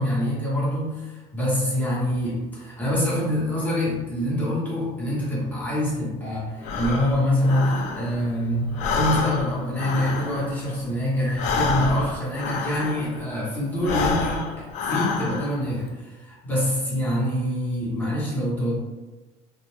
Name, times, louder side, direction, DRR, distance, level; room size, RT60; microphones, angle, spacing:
voice 1, 0.0-18.8, left 1 dB, 10° left, -7 dB, 1.0 m, -25 dB
Breathing, 6.6-8.4 8.7-13.3 13.7-15.7, left 4 dB, 55° left, 0.4 m, -28 dB
2.5 x 2.1 x 3.1 m, 1.2 s
cardioid pair, 145°, 15 cm